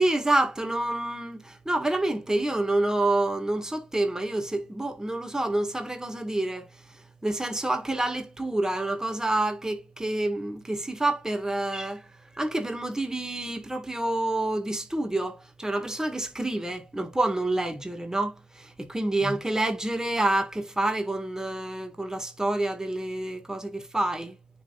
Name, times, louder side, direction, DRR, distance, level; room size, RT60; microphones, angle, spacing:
voice 1, 0.0-12.1 12.3-24.4, right 2 dB, 15° right, 2.2 m, -28 dB
9.7 x 4.0 x 2.6 m
supercardioid pair, 50°, 5 cm